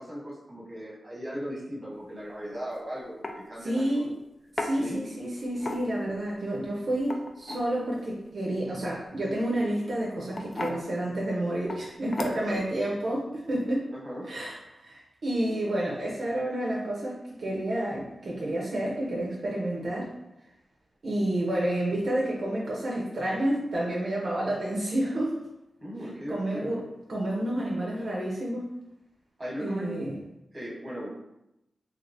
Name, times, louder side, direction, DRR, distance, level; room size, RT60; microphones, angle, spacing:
voice 1, 0.0-4.0 4.8-5.1 12.3-12.6 13.9-14.3 25.8-26.9 29.4-30.0 30.5-31.1, equal, 30° right, -5 dB, 1.1 m, -37 dB
sound 1, 2.5-2.7 3.2-3.4 4.6-4.7 5.6-6.1 7.0-7.7 9.3-9.6 10.3-10.8 11.7-11.8 12.1-12.6, left 2 dB, 40° left, 0.3 m, -34 dB
voice 2, 3.6-4.1 4.6-13.9 14.3-20.1 21.0-25.4 26.3-26.8 27.1-28.7 29.6-30.1, right 1 dB, 65° right, -3 dB, 0.5 m, -30 dB
3.2 x 2.8 x 2.5 m, 0.90 s
wide cardioid pair, 95°, 0 cm